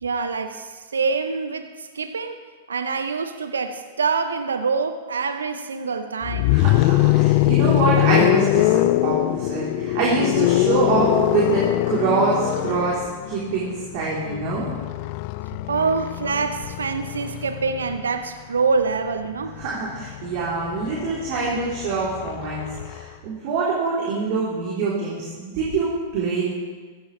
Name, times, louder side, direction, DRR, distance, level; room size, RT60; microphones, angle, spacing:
voice 1, 0.0-2.4 2.7-6.6 15.7-19.6, right 4 dB, 80° right, 9 dB, 0.8 m, -25 dB
sound 1, 6.2-18.2 19.4-23.0, left 18 dB, 50° left, 0.4 m, -23 dB
voice 2, 6.5-14.7 19.6-26.4, right 4 dB, 55° right, -6 dB, 3.6 m, -25 dB
15.5 x 14.5 x 3.3 m, 1.4 s
hypercardioid pair, 105°, 0 cm